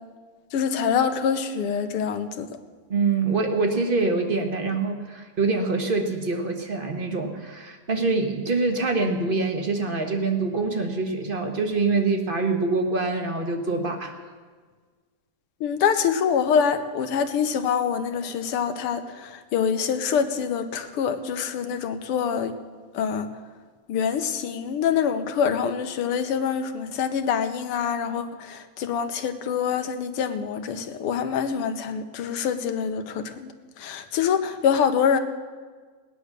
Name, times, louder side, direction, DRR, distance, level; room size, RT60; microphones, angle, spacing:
voice 1, 0.5-2.5 15.6-22.5 22.9-23.3 23.9-33.5 33.8-35.2, left 7 dB, 85° left, 9 dB, 1.9 m, -25 dB
voice 2, 2.9-14.2, right 3 dB, 30° right, 4 dB, 1.2 m, -25 dB
19.0 x 10.0 x 6.6 m, 1.5 s
omnidirectional pair, 2.4 m